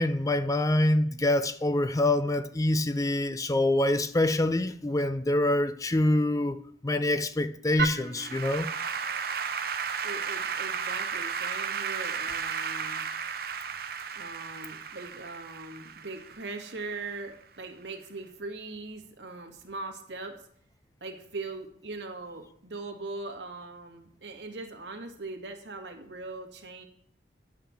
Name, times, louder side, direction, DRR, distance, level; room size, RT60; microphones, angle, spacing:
voice 1, 0.0-6.6 6.8-8.7, left 1 dB, 20° left, 0.5 m, -25 dB
Applause / Keyboard (musical), 7.8-17.1, right 6 dB, 55° right, 0.9 m, -34 dB
voice 2, 10.0-13.1 14.1-20.4 21.0-26.8, right 3 dB, 80° right, 2.1 m, -40 dB
10.5 x 5.7 x 7.3 m
head